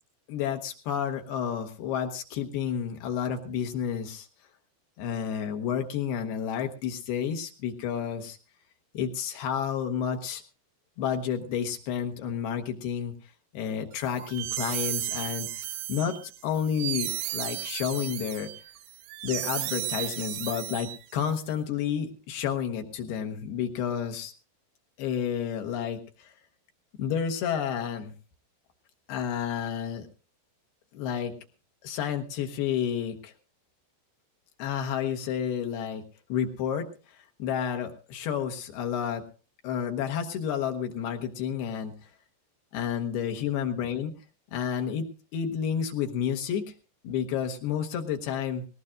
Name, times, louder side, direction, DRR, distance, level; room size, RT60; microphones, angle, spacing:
voice 1, 0.3-4.3 5.0-8.4 8.9-10.4 11.0-13.1 13.5-15.5 15.9-16.2 16.4-18.5 19.2-24.3 25.0-26.3 27.0-28.1 29.1-30.1 30.9-31.3 31.8-33.3 34.6-36.0 36.3-39.2 39.6-42.1 42.7-44.1 44.5-46.6 47.0-48.7, left 8 dB, 75° left, 4 dB, 3.0 m, -30 dB
sound 1, 14.1-21.3, right 14 dB, 75° right, 2.3 m, -34 dB
19.0 x 19.0 x 2.5 m, 0.35 s
omnidirectional pair, 4.7 m